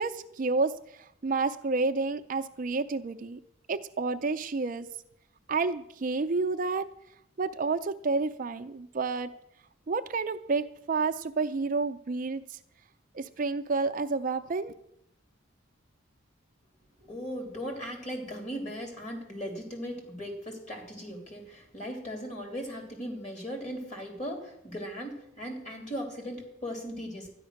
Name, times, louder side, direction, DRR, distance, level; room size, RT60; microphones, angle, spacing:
voice 1, 0.0-3.4 3.7-4.9 5.5-6.9 7.4-9.3 9.9-12.6 13.1-14.8, right 4 dB, 40° right, 9 dB, 0.4 m, -30 dB
voice 2, 17.0-27.3, equal, 35° left, 2 dB, 3.2 m, -38 dB
12.5 x 10.0 x 6.4 m, 0.81 s
head